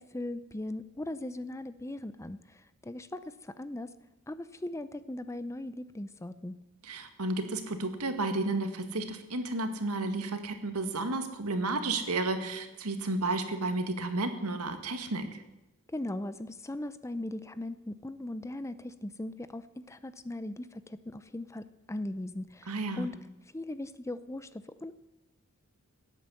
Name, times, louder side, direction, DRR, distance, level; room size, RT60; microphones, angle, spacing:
voice 1, 0.0-3.9 4.3-6.6 15.9-23.2 23.5-24.9, left 1 dB, 15° left, 14 dB, 0.5 m, -39 dB
voice 2, 6.8-15.3 22.7-23.1, right 2 dB, 90° right, 7 dB, 1.9 m, -32 dB
16.5 x 9.2 x 8.3 m, 0.98 s
head